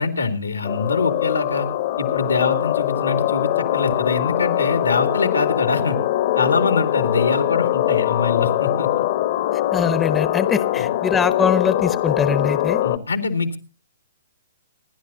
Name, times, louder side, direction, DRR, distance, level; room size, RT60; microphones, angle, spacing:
voice 1, 0.0-1.7 2.0-6.0 6.3-9.0 10.7-10.9 12.8-13.6, left 4 dB, 90° left, 9 dB, 2.3 m, -23 dB
sound 1, 0.6-13.0, left 14 dB, 50° left, 1.2 m, -22 dB
voice 2, 9.7-12.8, left 6 dB, 15° left, 14 dB, 1.0 m, -22 dB
27.5 x 11.0 x 2.7 m, 0.32 s
hypercardioid pair, 125°, 0 cm